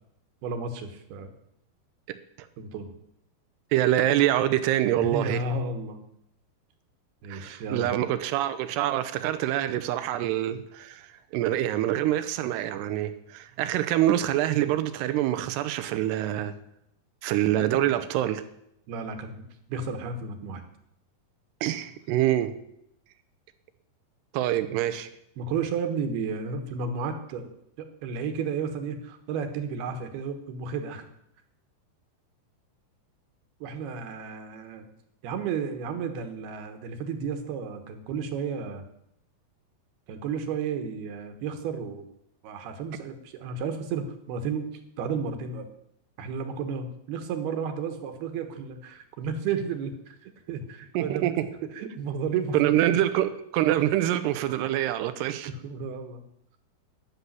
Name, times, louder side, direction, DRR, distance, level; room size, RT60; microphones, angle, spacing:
voice 1, 0.4-1.3 2.6-2.9 5.0-6.0 7.2-7.9 18.9-19.4 19.7-20.6 25.4-27.5 27.8-31.0 33.6-34.9 35.2-38.8 40.1-42.1 42.4-45.7 46.2-51.3 51.8-53.0 55.4-56.2, right 5 dB, 75° right, 3.2 m, -32 dB
voice 2, 3.7-5.4 7.3-16.5 17.2-18.4 21.6-22.5 24.3-25.1 51.0-51.5 52.5-55.5, right 13 dB, 90° right, 2.9 m, -25 dB
12.0 x 7.1 x 9.8 m
omnidirectional pair, 4.7 m